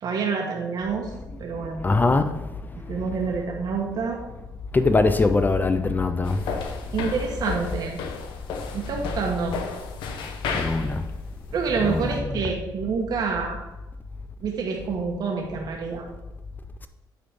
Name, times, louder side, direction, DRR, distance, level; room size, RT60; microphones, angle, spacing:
voice 1, 0.0-1.1 1.4-1.8 2.9-4.2 6.9-8.0 8.7-9.6 11.5-13.6 14.4-16.1, right 5 dB, 55° right, 1.4 m, -27 dB
voice 2, 1.8-2.4 4.7-6.4 10.5-11.0 11.8-12.0, left 3 dB, 20° left, 0.5 m, -21 dB
sound 1, 6.2-12.2, left 5 dB, 80° left, 1.0 m, -34 dB
9.2 x 4.1 x 5.0 m
cardioid pair, 100°, 8 cm